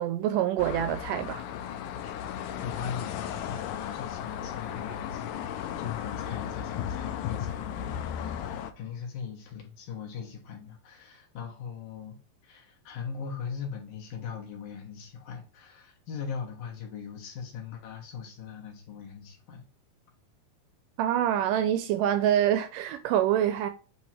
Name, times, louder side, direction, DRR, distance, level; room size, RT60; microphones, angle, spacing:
voice 1, 0.0-1.5 21.0-23.7, right 11 dB, 85° right, 1.9 m, -26 dB
sound 1, 0.6-8.7, left 9 dB, 85° left, 1.8 m, -35 dB
voice 2, 2.6-12.2 12.4-19.6, left 7 dB, 70° left, 2.9 m, -40 dB
8.7 x 3.1 x 4.4 m
omnidirectional pair, 4.3 m